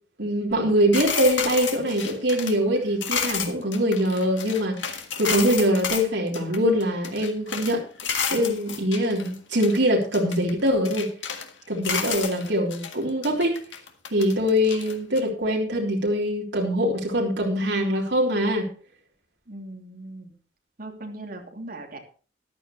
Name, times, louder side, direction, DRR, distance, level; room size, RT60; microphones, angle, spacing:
voice 1, 0.2-7.8 8.3-11.1 11.7-13.5 14.1-18.7, equal, 70° right, -2 dB, 3.5 m, -23 dB
sound 1, 0.9-6.0 6.3-7.7 8.0-9.8 10.1-11.5 11.8-13.0 13.2-15.2, left 6 dB, 85° left, 1.8 m, -31 dB
voice 2, 19.5-20.3 20.8-22.0, right 2 dB, 55° right, 2 dB, 2.9 m, -39 dB
14.0 x 11.5 x 3.1 m, 0.39 s
head